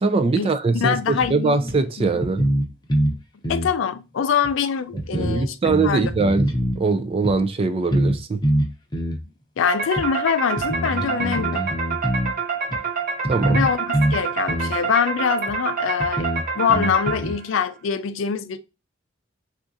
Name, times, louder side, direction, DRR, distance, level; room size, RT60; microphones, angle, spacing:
voice 1, 0.0-2.5 5.1-6.5 6.8-8.4 13.3-13.6, right 3 dB, 30° right, 0.3 m, -22 dB
voice 2, 0.7-1.6 2.0-2.1 3.5-5.6 5.8-6.1 9.6-11.6 13.5-16.3 16.6-18.6, left 7 dB, 85° left, 0.4 m, -24 dB
sound 1, 1.2-1.3 1.7-1.8 2.2-3.2 3.4-3.7 4.4-4.5 5.0-6.8 7.2-7.4 7.9-8.2 8.4-9.2 10.0-10.1 10.6-12.3 12.7-12.8 13.2-14.2 14.5-14.8 15.5-15.6 16.0-17.3, right 1 dB, 20° left, 0.7 m, -24 dB
sound 2, 9.7-17.5, right 5 dB, 50° right, 0.9 m, -27 dB
3.7 x 2.4 x 2.5 m
head